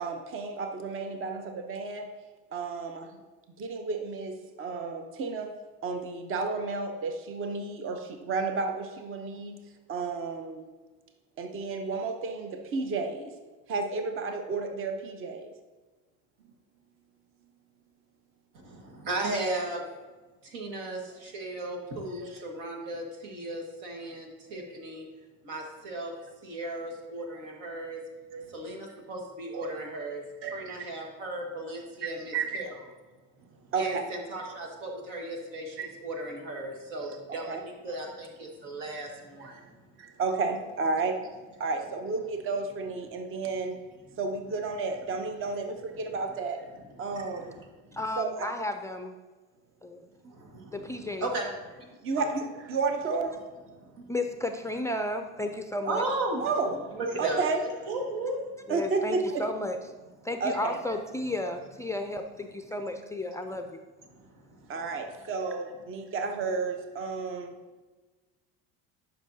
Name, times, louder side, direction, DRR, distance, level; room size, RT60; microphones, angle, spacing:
voice 1, 0.0-2.1 2.5-3.1 3.6-5.5 5.8-9.5 9.9-10.6 11.4-13.3 13.7-15.4 22.2-22.3 26.6-26.8 28.3-28.4 29.5-29.7 30.4-30.8 32.0-32.6 33.7-34.0 35.7-35.9 37.0-37.6 40.2-41.2 41.6-43.8 44.2-46.7 47.0-47.5 48.2-48.5 52.0-53.3 56.4-56.9 57.2-57.9 58.7-59.5 60.4-60.8 64.7-67.5, right 4 dB, 40° right, 6 dB, 0.8 m, -32 dB
voice 2, 18.6-19.8 20.4-25.0 25.4-26.1 26.4-28.0 28.5-30.2 30.5-32.7 33.8-39.6 47.1-48.0 50.2-51.5 51.7-51.9 52.2-52.3 53.8-54.1 55.9-56.4 57.0-57.4 57.9-58.4 64.1-64.3, right 2 dB, 75° right, 1 dB, 1.7 m, -36 dB
voice 3, 47.9-49.1 49.8-50.1 50.7-51.3 54.1-56.0 58.7-59.8 60.2-63.8, left 1 dB, 10° left, 5 dB, 0.4 m, -33 dB
11.0 x 5.6 x 2.7 m, 1.3 s
supercardioid pair, 105°, 34 cm